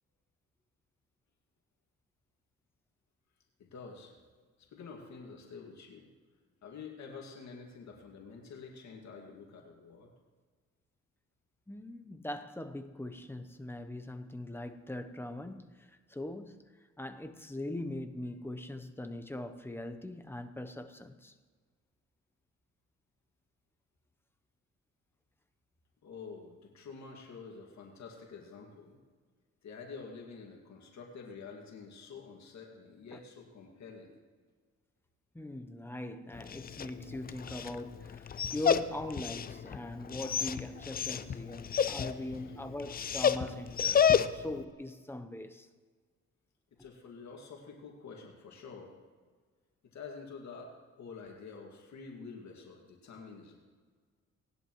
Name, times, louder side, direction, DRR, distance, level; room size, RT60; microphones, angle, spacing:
voice 1, 3.6-4.1 4.6-6.1 6.6-10.1 26.0-29.0 29.6-34.1 41.9-42.6 46.8-48.9 49.8-53.6, left 5 dB, 65° left, 2.2 m, -48 dB
voice 2, 11.7-16.7 17.0-21.3 33.1-33.2 35.3-44.1 44.3-45.7 46.8-46.9, left 1 dB, 10° left, 0.8 m, -41 dB
Dog, 36.3-44.6, left 8 dB, 30° left, 0.5 m, -31 dB
19.0 x 10.5 x 3.1 m
cardioid pair, 90°, 30 cm